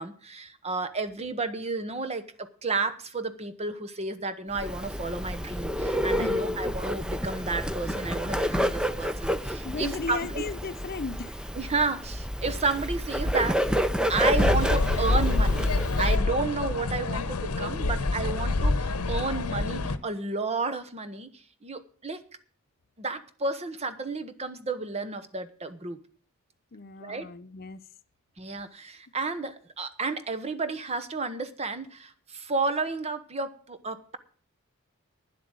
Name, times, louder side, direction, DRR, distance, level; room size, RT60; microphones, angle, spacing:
voice 1, 0.0-10.4 11.5-13.8 14.1-15.7 16.0-21.3 21.6-22.2 23.0-26.0 27.0-27.3 28.4-34.2, right 3 dB, 30° right, 1.0 m, -32 dB
Bird, 4.5-16.2, equal, 5° right, 0.6 m, -29 dB
voice 2, 6.2-6.7 9.6-11.5 26.7-27.8, left 4 dB, 45° left, 0.6 m, -36 dB
sound 1, 14.4-20.0, left 2 dB, 90° left, 0.9 m, -26 dB
10.5 x 7.8 x 7.8 m
head